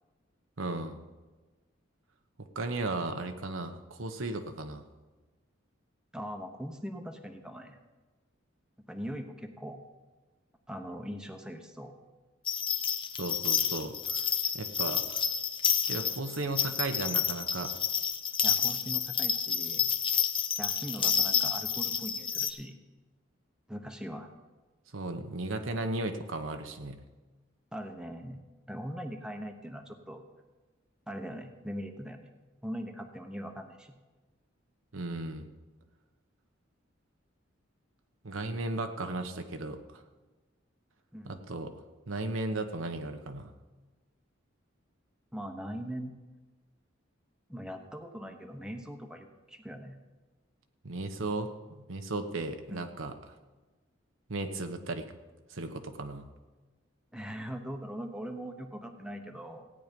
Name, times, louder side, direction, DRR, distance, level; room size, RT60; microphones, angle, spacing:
voice 1, 0.6-1.0 2.5-4.8 13.1-14.3 14.5-15.2 15.9-17.7 24.9-27.0 34.9-35.5 38.2-40.0 41.2-41.7 42.1-43.5 50.8-53.1 54.3-55.0 55.5-56.3, right 2 dB, 85° right, 6 dB, 1.1 m, -35 dB
voice 2, 6.1-7.8 8.9-9.8 10.7-11.9 18.4-19.9 20.6-22.7 23.7-24.3 27.7-28.4 28.7-30.2 31.1-32.3 32.6-33.9 41.1-41.4 45.3-46.1 47.5-50.0 52.7-52.9 57.1-59.7, equal, 5° right, 4 dB, 1.0 m, -41 dB
sound 1, 12.5-22.5, left 7 dB, 25° left, 0.7 m, -29 dB
15.5 x 9.4 x 5.3 m, 1.2 s
head